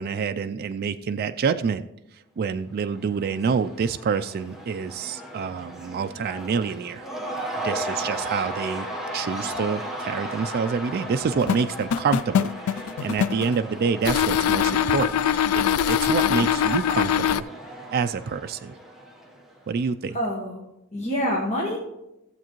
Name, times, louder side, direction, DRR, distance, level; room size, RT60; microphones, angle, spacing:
voice 1, 0.0-1.9 2.1-7.1 7.6-8.9 9.1-15.2 15.5-17.5 17.9-18.8 19.7-20.2, right 5 dB, 45° right, 9 dB, 0.3 m, -27 dB
Cheering / Crowd, 2.8-19.7, right 1 dB, ahead, 1.1 m, -36 dB
sound 1, 11.4-13.6 14.0-17.4, left 9 dB, 80° left, 0.3 m, -22 dB
voice 2, 20.1-20.6 20.9-21.8, equal, 30° left, -4 dB, 1.5 m, -26 dB
15.0 x 7.4 x 3.0 m, 0.90 s
head